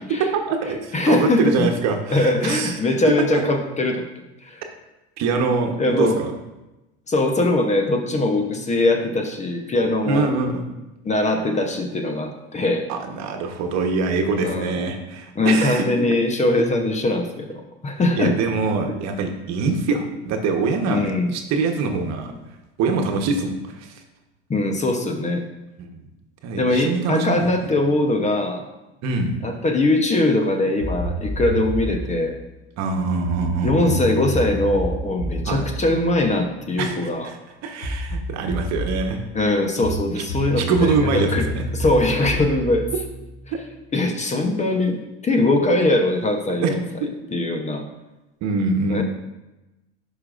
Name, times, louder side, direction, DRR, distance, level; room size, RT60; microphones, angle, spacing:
voice 1, 0.2-2.7 3.3-3.4 5.2-6.3 10.0-10.6 12.9-15.8 18.2-22.3 22.8-23.9 25.9-26.1 26.4-27.7 29.0-29.4 32.8-34.0 35.5-35.6 36.8-37.0 37.2-37.4 37.6-39.2 40.6-41.7 46.5-46.7 48.4-49.0, right 4 dB, 50° right, 4 dB, 1.1 m, -24 dB
voice 2, 0.9-1.7 2.1-4.1 4.4-4.6 5.8-6.2 7.1-10.3 11.0-12.9 14.4-14.8 15.4-18.4 18.9-19.0 20.9-21.3 24.5-25.4 26.6-28.6 29.4-32.4 33.6-37.3 39.3-41.5 41.7-42.9 43.9-45.0 45.2-46.8 47.3-47.8 48.9-49.0, left 2 dB, 20° left, 5 dB, 0.9 m, -21 dB
sound 1, 30.8-32.1 33.2-36.9 37.8-39.1 39.8-43.8, right 1 dB, 75° left, 2.4 m, -29 dB
11.5 x 5.0 x 2.5 m, 1.0 s
hypercardioid pair, 85°, 33 cm